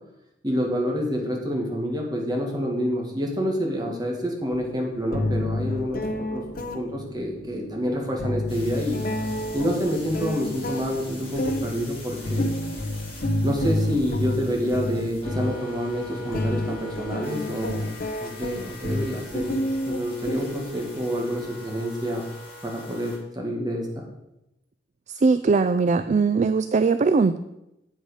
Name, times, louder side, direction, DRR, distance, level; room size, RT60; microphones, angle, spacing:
voice 1, 0.4-6.4 6.7-9.0 9.5-12.5 13.4-22.3 22.6-24.0, equal, 25° right, -1 dB, 2.1 m, -28 dB
sound 1, 4.5-4.6 5.1-21.0, left 1 dB, 55° left, 1.0 m, -30 dB
sound 2, 8.5-23.2, left 1 dB, 30° left, 4.0 m, -42 dB
voice 2, 25.1-27.4, right 4 dB, 40° right, 11 dB, 0.4 m, -20 dB
8.2 x 8.0 x 5.0 m, 0.87 s
head